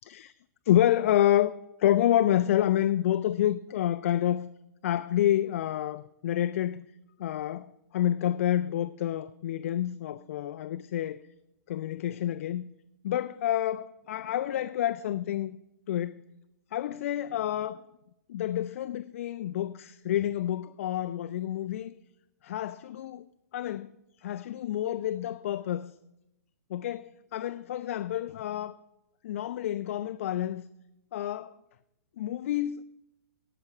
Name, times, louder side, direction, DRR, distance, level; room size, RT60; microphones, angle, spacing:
voice 1, 0.0-0.3 0.7-1.5 1.8-4.5 4.8-6.9 7.2-11.2 11.7-12.7 13.0-15.6 15.9-16.2 16.7-17.8 18.3-21.9 22.4-23.3 23.5-23.9 24.2-25.9 26.7-28.7 29.2-30.6 31.1-31.5 32.2-32.8, left 12 dB, 50° left, 0.4 m, -28 dB
17.5 x 5.9 x 4.4 m
hypercardioid pair, 155°, 9 cm